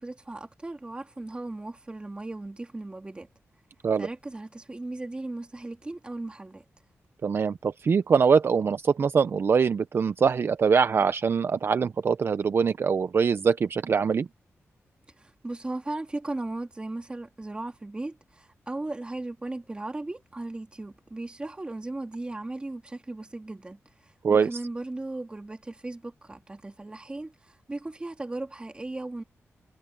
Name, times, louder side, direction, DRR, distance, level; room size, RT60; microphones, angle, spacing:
voice 1, 0.0-3.3 4.0-6.6 15.2-23.8 24.3-29.2, right 2 dB, 20° right, 2.8 m, -37 dB
voice 2, 7.2-14.3 24.2-24.6, right 6 dB, 50° right, 0.5 m, -23 dB
wide cardioid pair, 125°, 5 cm